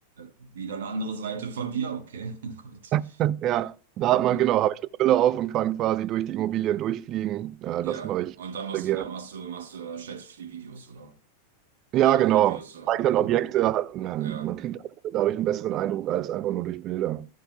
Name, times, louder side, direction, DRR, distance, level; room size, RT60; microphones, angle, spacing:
voice 1, 0.2-2.9 4.1-4.5 7.8-11.1 12.0-13.3 14.2-14.5, right 5 dB, 60° right, 1.2 m, -36 dB
voice 2, 2.9-8.3 8.7-9.0 11.9-12.6 12.9-14.8 15.0-17.3, right 13 dB, 35° right, 0.4 m, -25 dB
14.0 x 7.3 x 2.3 m
figure-of-eight pair, 90°, 0 cm